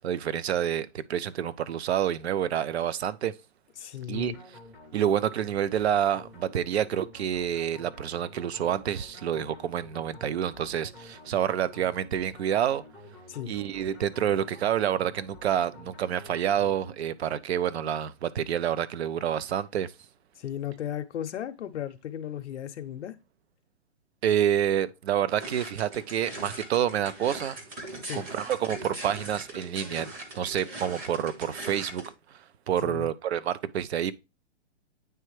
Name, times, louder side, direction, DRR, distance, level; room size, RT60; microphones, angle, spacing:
voice 1, 0.0-3.3 4.1-4.3 4.9-12.8 13.5-19.9 24.2-27.6 28.1-32.0 32.3-32.4 32.7-34.1, right 10 dB, 65° right, 0.5 m, -28 dB
voice 2, 3.8-4.3 13.3-13.5 20.4-23.1 28.0-28.2 32.8-33.1, left 10 dB, 80° left, 0.6 m, -35 dB
sound 1, 4.1-17.4, left 1 dB, 5° right, 0.6 m, -50 dB
sound 2, 25.4-32.1, right 1 dB, 20° right, 1.0 m, -41 dB
9.0 x 3.3 x 3.1 m
hypercardioid pair, 150°, 34 cm